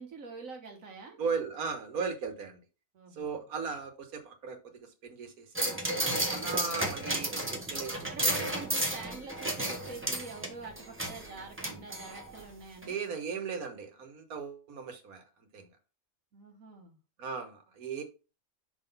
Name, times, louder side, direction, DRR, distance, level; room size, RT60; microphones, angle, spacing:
voice 1, 0.0-1.2 2.9-3.4 7.9-13.0 16.3-17.0, right 4 dB, 70° right, 1.6 m, -45 dB
voice 2, 1.2-2.6 3.1-5.8 6.3-7.9 8.2-8.3 12.8-15.2 15.5-15.7 17.2-18.0, right 5 dB, 85° right, 1.7 m, -37 dB
sound 1, 5.6-12.4 12.8-12.9, right 1 dB, 10° right, 1.2 m, -33 dB
5.8 x 3.9 x 5.4 m
omnidirectional pair, 1.5 m